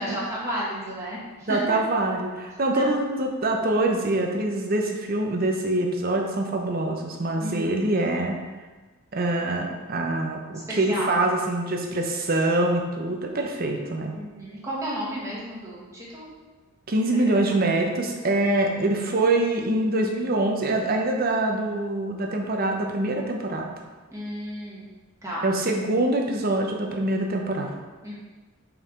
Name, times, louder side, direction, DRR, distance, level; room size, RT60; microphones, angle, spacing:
voice 1, 0.0-1.6 2.7-2.9 7.4-7.9 10.5-11.2 14.1-16.3 17.1-17.2 17.5-17.6 24.1-24.9 25.2-25.5 28.0-28.2, equal, 15° right, -7 dB, 1.6 m, -33 dB
voice 2, 1.5-8.3 9.1-14.2 16.9-23.7 25.4-27.7, right 2 dB, 45° right, 2 dB, 0.7 m, -24 dB
5.5 x 4.7 x 3.7 m, 1.3 s
head